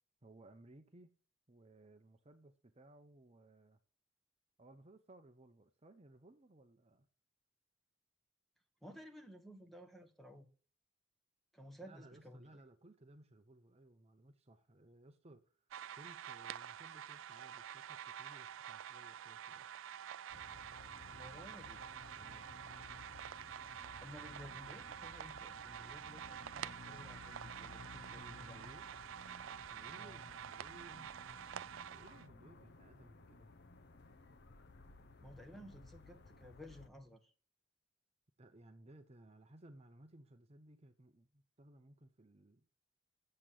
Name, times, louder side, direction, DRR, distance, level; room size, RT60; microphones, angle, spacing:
voice 1, 0.2-1.1 1.5-3.8 4.6-7.1 11.8-15.6 15.9-19.7 22.1-22.6 28.2-28.9 29.6-31.2 31.9-33.5 38.4-42.7, right 1 dB, 30° right, 0.8 m, -60 dB
voice 2, 8.8-10.5 11.5-12.6 21.1-21.8 24.0-28.6 30.0-30.2 35.2-37.3, equal, ahead, 1.3 m, -55 dB
sound 1, 15.7-32.3, right 9 dB, 70° right, 0.4 m, -48 dB
sound 2, 20.3-36.9, left 3 dB, 55° left, 0.8 m, -57 dB
8.1 x 7.6 x 6.9 m
head